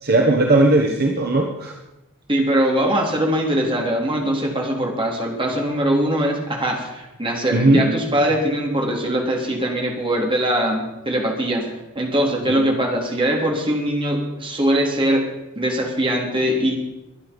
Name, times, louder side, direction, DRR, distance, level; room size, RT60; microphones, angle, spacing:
voice 1, 0.0-1.7 7.5-7.9 12.5-12.6, right 2 dB, 45° right, 1 dB, 1.6 m, -17 dB
voice 2, 2.3-15.3 15.6-16.7, right 1 dB, 25° right, 0 dB, 3.5 m, -21 dB
24.0 x 10.0 x 5.4 m, 0.96 s
head